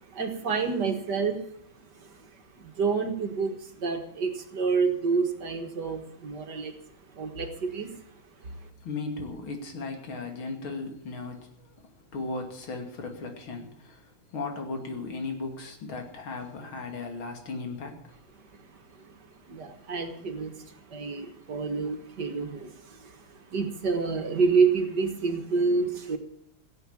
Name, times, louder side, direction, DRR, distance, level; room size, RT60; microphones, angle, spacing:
voice 1, 0.0-1.4 1.9-2.3 2.6-6.7 7.1-8.1 8.4-8.6 18.9-26.2, right 5 dB, 55° right, 6 dB, 2.1 m, -29 dB
voice 2, 8.5-18.2, left 3 dB, 75° left, 3 dB, 3.4 m, -37 dB
16.5 x 8.2 x 8.7 m, 0.71 s
omnidirectional pair, 2.3 m